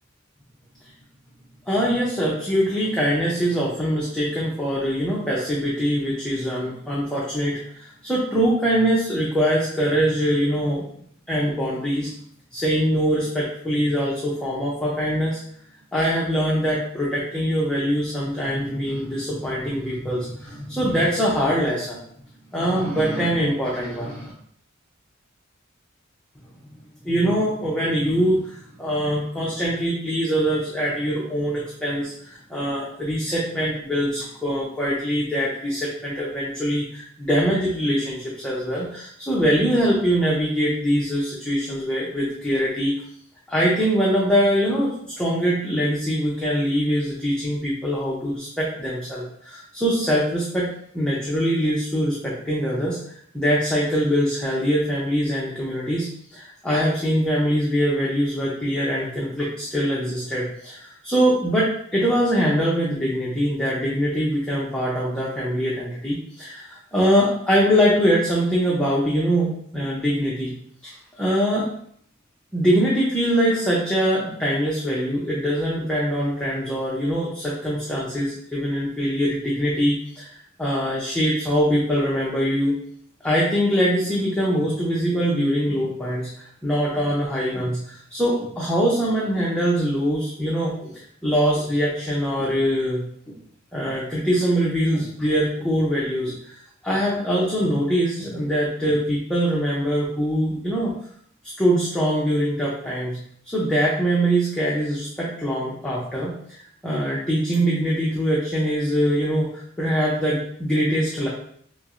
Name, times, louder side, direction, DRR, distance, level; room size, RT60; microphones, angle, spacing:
voice 1, 1.7-10.9 11.3-12.1 12.5-15.4 15.9-22.0 22.5-24.3 27.0-42.9 43.5-50.7 50.9-53.0 53.3-69.5 69.7-70.5 70.8-71.7 72.5-82.8 83.2-93.4 93.7-100.9 101.6-103.2 103.5-106.6 106.8-111.3, equal, 5° left, -6 dB, 0.5 m, -23 dB
5.5 x 2.0 x 2.5 m, 0.65 s
head